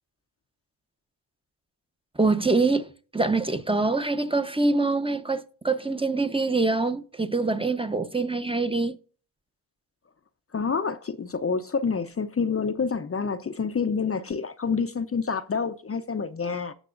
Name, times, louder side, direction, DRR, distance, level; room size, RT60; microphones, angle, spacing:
voice 1, 2.1-9.0, right 3 dB, 10° right, 1.0 m, -25 dB
voice 2, 10.5-16.7, left 5 dB, 30° left, 0.8 m, -28 dB
17.0 x 6.1 x 2.6 m
cardioid pair, 70°, 45 cm